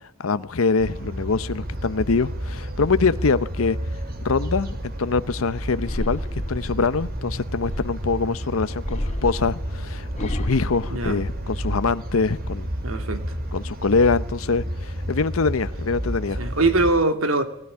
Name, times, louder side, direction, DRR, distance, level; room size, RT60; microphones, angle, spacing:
voice 1, 0.2-3.8 4.2-6.2 6.5-12.7 13.5-16.4, left 4 dB, 90° left, 0.8 m, -24 dB
sound 1, 0.8-16.9, equal, 45° right, 2.7 m, -31 dB
sound 2, 5.8-8.2 8.8-11.9 12.3-12.9, left 1 dB, 35° left, 3.1 m, -32 dB
voice 2, 10.9-11.2 12.8-13.2 16.4-17.4, right 2 dB, 85° right, 2.6 m, -22 dB
20.5 x 15.0 x 9.8 m
head